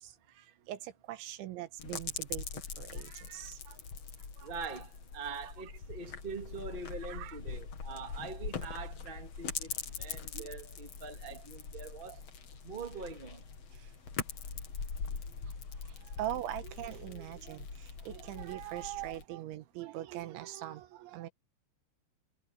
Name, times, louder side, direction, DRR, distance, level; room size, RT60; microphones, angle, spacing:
voice 1, 0.0-2.5 2.8-3.8 4.4-4.5 7.0-7.4 10.3-10.5 11.3-11.4 15.1-15.2 16.1-21.3, right 14 dB, 80° right, 3.6 m, -42 dB
sound 1, 1.8-19.2, left 5 dB, 45° left, 2.3 m, -42 dB
voice 2, 4.4-9.7 10.0-12.2 12.6-13.4, right 4 dB, 20° right, 1.5 m, -43 dB
omnidirectional pair, 5.3 m